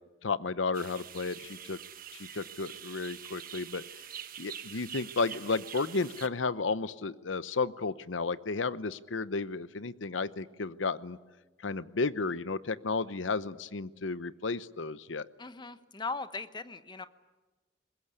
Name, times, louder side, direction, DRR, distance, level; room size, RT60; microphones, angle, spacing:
voice 1, 0.2-1.8 2.1-3.8 4.4-11.2 11.6-15.3, left 4 dB, 90° left, 16 dB, 0.8 m, -33 dB
sound 1, 0.7-6.3, right 9 dB, 50° right, 1.2 m, -45 dB
voice 2, 15.4-17.1, left 3 dB, 25° left, 12 dB, 1.0 m, -39 dB
23.0 x 20.5 x 9.8 m, 1.2 s
head